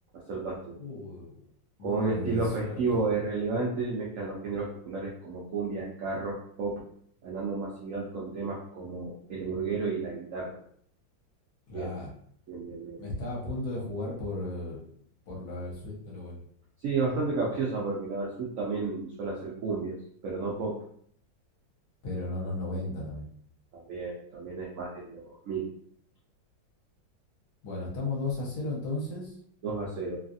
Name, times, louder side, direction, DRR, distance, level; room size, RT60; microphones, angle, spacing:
voice 1, 0.3-0.8 1.8-6.8 7.2-10.6 11.7-11.9 12.5-13.0 16.8-20.0 20.2-20.8 23.7-25.7 29.6-30.2, right 3 dB, 80° right, -4 dB, 0.7 m, -32 dB
voice 2, 0.8-1.4 1.8-2.8 11.7-12.1 13.0-14.8 15.3-16.4 22.0-23.3 27.6-29.4, left 2 dB, 65° left, -4 dB, 1.4 m, -35 dB
3.2 x 2.4 x 2.6 m, 0.63 s
omnidirectional pair, 2.1 m